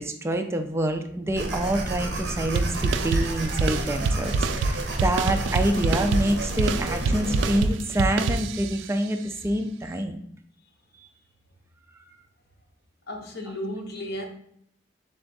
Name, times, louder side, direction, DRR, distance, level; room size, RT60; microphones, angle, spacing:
voice 1, 0.0-10.2, right 1 dB, 15° right, 0.4 m, -27 dB
sound 1, 1.4-7.6, right 1 dB, 65° right, 0.8 m, -31 dB
sound 2, 2.6-8.9, right 3 dB, 85° right, 0.3 m, -26 dB
voice 2, 13.1-14.2, equal, 65° left, 0.7 m, -33 dB
3.5 x 3.3 x 4.0 m
head